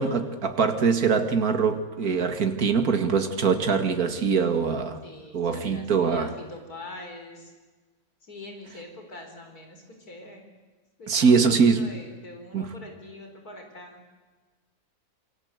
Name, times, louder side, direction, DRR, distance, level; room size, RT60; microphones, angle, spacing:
voice 1, 0.0-5.0 5.3-6.3 11.1-11.9 12.5-12.7, right 5 dB, 70° right, 7 dB, 2.5 m, -23 dB
voice 2, 5.0-7.5 8.2-10.5 11.0-14.0, left 2 dB, 75° left, 4 dB, 4.9 m, -43 dB
27.5 x 25.0 x 8.2 m, 1.3 s
omnidirectional pair, 1.6 m